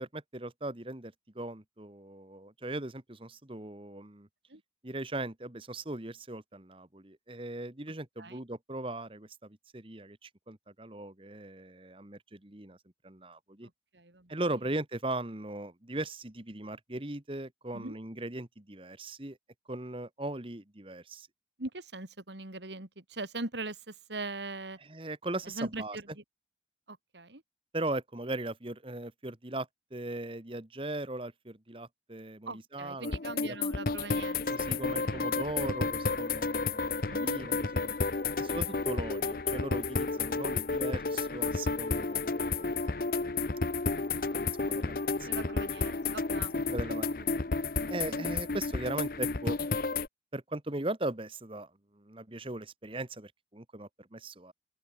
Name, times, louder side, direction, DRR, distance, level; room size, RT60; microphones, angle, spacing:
voice 1, 0.0-4.3 4.8-12.8 13.0-13.7 14.3-19.4 19.7-21.3 24.9-26.0 27.7-33.1 33.4-33.6 34.5-37.9 38.4-43.2 44.2-45.5 46.7-47.4 47.9-49.6 50.3-51.7 51.9-54.5, right 2 dB, 30° right, 1.5 m, -39 dB
voice 2, 13.6-14.4 17.7-18.0 21.6-24.8 25.4-26.2 26.9-27.4 32.5-35.5 37.1-37.4 44.3-44.6 45.2-46.8 48.1-48.3, right 2 dB, 85° right, 2.9 m, -41 dB
sound 1, 33.0-50.1, left 4 dB, 55° left, 0.8 m, -31 dB
open air
head